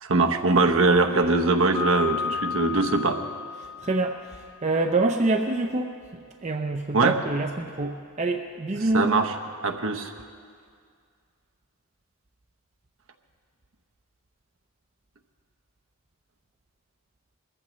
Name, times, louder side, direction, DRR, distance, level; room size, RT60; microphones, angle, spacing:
voice 1, 0.0-3.2 6.9-7.2 8.8-9.3 9.6-10.1, right 3 dB, 65° right, 5 dB, 0.9 m, -22 dB
Piano, 1.7-4.6, left 6 dB, 85° right, 2.9 m, -33 dB
voice 2, 3.8-4.1 4.6-9.1, right 2 dB, 30° right, 4 dB, 0.5 m, -26 dB
21.5 x 14.5 x 3.1 m, 2.1 s
head